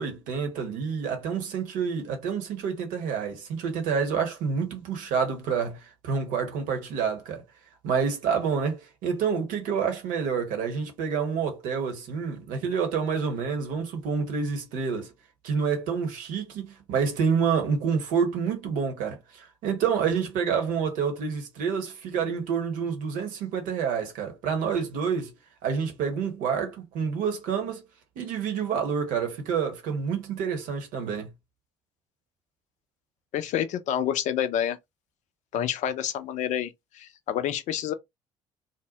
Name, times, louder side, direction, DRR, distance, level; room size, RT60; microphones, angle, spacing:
voice 1, 0.0-7.4 7.8-15.1 15.4-25.3 25.6-27.8 28.2-31.3, right 6 dB, 60° right, 0.9 m, -28 dB
voice 2, 33.3-34.8 35.5-37.9, left 10 dB, 50° left, 0.5 m, -28 dB
2.6 x 2.1 x 2.8 m
figure-of-eight pair, 50°, 15 cm